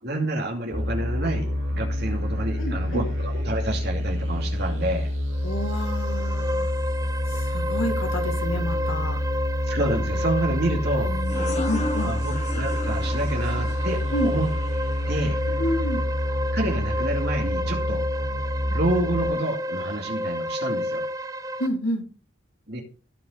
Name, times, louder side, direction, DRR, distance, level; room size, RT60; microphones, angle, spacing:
voice 1, 0.0-5.1 9.7-11.1 11.9-14.5 15.1-15.4 16.5-18.0 18.7-21.0 22.7-22.8, right 1 dB, 55° right, 2 dB, 2.5 m, -28 dB
sound 1, 0.7-19.3, left 1 dB, 75° right, 3.5 m, -27 dB
voice 2, 2.6-3.0 5.4-6.7 7.3-9.2 11.1-12.1 14.1-14.4 15.6-16.0 21.6-22.0, equal, 75° left, 4 dB, 2.2 m, -29 dB
sound 2, 5.3-21.7, equal, 15° right, 0.5 m, -31 dB
sound 3, 11.2-16.6, left 2 dB, 35° left, 1.3 m, -36 dB
16.0 x 5.4 x 4.0 m, 0.39 s
head